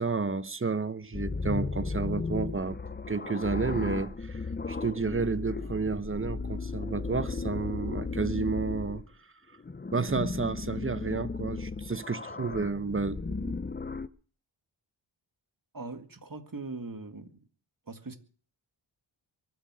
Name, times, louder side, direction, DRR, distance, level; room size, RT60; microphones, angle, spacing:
voice 1, 0.0-2.8 3.1-4.4 4.7-9.0 9.9-13.5, right 4 dB, 25° right, 0.9 m, -31 dB
sound 1, 1.1-9.1 9.6-14.1, left 4 dB, 20° left, 0.6 m, -35 dB
voice 2, 15.7-17.4 17.9-18.2, right 3 dB, 40° right, 2.0 m, -40 dB
23.5 x 7.8 x 6.2 m
wide cardioid pair, 55°, 49 cm